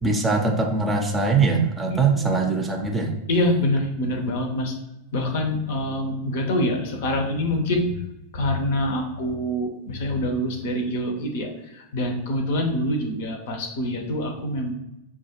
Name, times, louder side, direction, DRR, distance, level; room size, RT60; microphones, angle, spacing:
voice 1, 0.0-3.1, right 4 dB, 15° right, 1 dB, 0.6 m, -22 dB
voice 2, 1.9-2.3 3.3-4.7 5.1-8.0 8.3-14.7, left 1 dB, 55° left, 4 dB, 0.7 m, -25 dB
6.0 x 2.3 x 2.9 m, 0.91 s
figure-of-eight pair, 90°, 0 cm